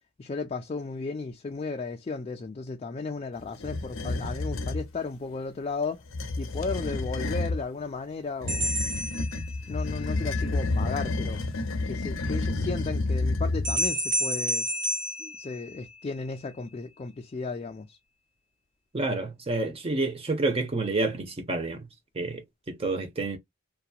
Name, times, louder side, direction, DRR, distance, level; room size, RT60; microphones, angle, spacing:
voice 1, 0.2-6.0 6.4-8.7 9.7-11.4 11.8-14.7 15.2-18.0, left 4 dB, 30° left, 0.4 m, -34 dB
sound 1, 3.6-4.9 6.0-7.6 8.4-13.9, left 2 dB, 80° left, 0.6 m, -30 dB
sound 2, 8.5-10.0 13.6-16.2, equal, 65° right, 1.4 m, -30 dB
voice 2, 18.9-21.9 22.2-23.4, right 2 dB, 30° right, 0.6 m, -29 dB
2.8 x 2.2 x 2.3 m
head